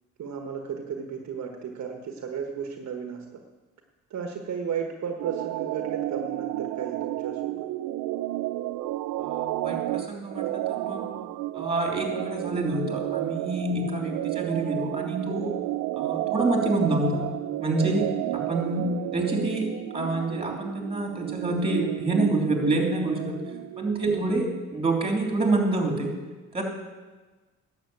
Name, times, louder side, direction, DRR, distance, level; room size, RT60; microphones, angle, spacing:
voice 1, 0.2-3.4 4.1-7.7 19.0-19.1 24.1-24.4, right 7 dB, 60° right, 4 dB, 1.4 m, -34 dB
sound 1, 5.2-24.2, right 15 dB, 90° right, 0.4 m, -31 dB
voice 2, 9.2-11.1 11.5-15.5 15.9-17.3 17.6-18.1 18.5-19.7 19.9-23.3 23.8-26.1 26.5-26.6, right 2 dB, 20° right, 1 dB, 3.1 m, -27 dB
11.5 x 7.1 x 8.4 m, 1.3 s
cardioid pair, 90°, 30 cm